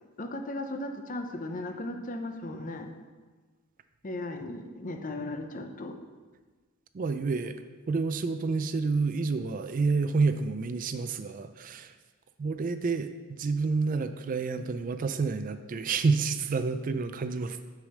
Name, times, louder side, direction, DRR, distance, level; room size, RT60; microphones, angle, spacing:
voice 1, 0.0-2.9 4.0-6.0, left 1 dB, 40° left, 6 dB, 0.6 m, -36 dB
voice 2, 6.9-11.9 12.4-17.6, right 4 dB, 40° right, 10 dB, 0.3 m, -29 dB
6.5 x 4.9 x 6.4 m, 1.4 s
head